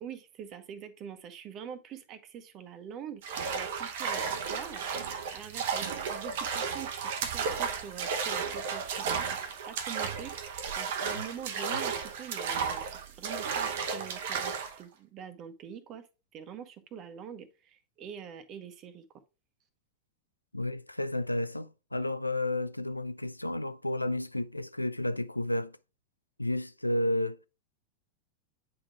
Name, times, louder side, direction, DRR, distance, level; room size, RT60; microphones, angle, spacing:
voice 1, 0.0-3.2 3.5-4.9 5.3-9.4 9.7-12.8 13.1-16.1 16.3-19.0, right 8 dB, 35° right, 1.0 m, -45 dB
sound 1, 3.2-14.8, right 6 dB, 55° right, 0.8 m, -33 dB
voice 2, 20.5-25.8 26.4-27.4, left 1 dB, 85° left, 0.3 m, -31 dB
8.8 x 3.8 x 3.3 m
figure-of-eight pair, 90°, 0 cm